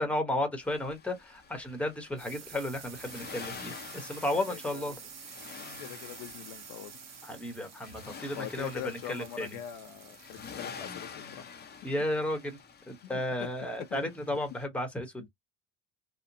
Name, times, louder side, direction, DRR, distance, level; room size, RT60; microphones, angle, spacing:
voice 1, 0.0-4.9 7.2-9.6 11.8-12.6 12.9-15.3, left 1 dB, 5° left, 0.9 m, -33 dB
Accelerating revving vroom, 0.6-14.6, left 6 dB, 30° left, 0.6 m, -48 dB
sound 1, 1.4-12.7, right 9 dB, 50° right, 0.8 m, -50 dB
voice 2, 4.5-4.8 5.8-7.0 8.3-11.5 13.0-13.5 13.9-14.1, left 11 dB, 70° left, 0.7 m, -42 dB
2.8 x 2.0 x 2.6 m
cardioid pair, 115°, 35 cm